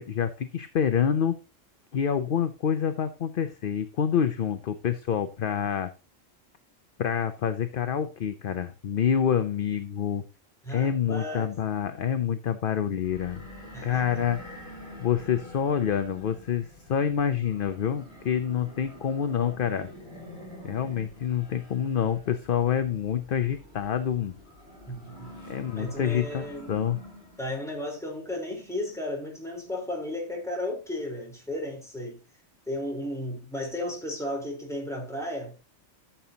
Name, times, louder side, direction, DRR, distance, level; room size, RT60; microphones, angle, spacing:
voice 1, 0.0-1.3 1.9-5.9 7.0-10.2 10.7-13.5 13.8-14.4 15.0-19.9 20.6-24.3 25.5-27.0, left 8 dB, 50° left, 0.7 m, -27 dB
voice 2, 10.6-11.5 13.7-14.2 24.9-25.3 25.8-26.7 27.4-32.2 32.7-35.5, left 1 dB, ahead, 3.8 m, -34 dB
sound 1, 13.0-27.5, left 1 dB, 35° left, 5.7 m, -47 dB
13.0 x 6.9 x 2.8 m
omnidirectional pair, 1.3 m